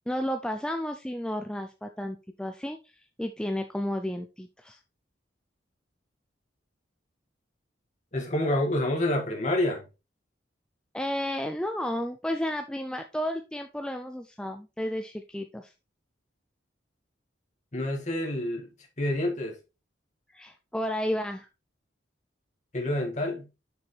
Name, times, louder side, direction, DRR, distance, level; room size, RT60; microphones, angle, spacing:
voice 1, 0.1-4.8 10.9-15.7 20.3-21.5, equal, 5° left, 0.4 m, -32 dB
voice 2, 8.1-9.8 17.7-18.7 19.0-19.6 22.7-23.5, left 1 dB, 35° left, 1.9 m, -28 dB
6.8 x 6.3 x 3.2 m
head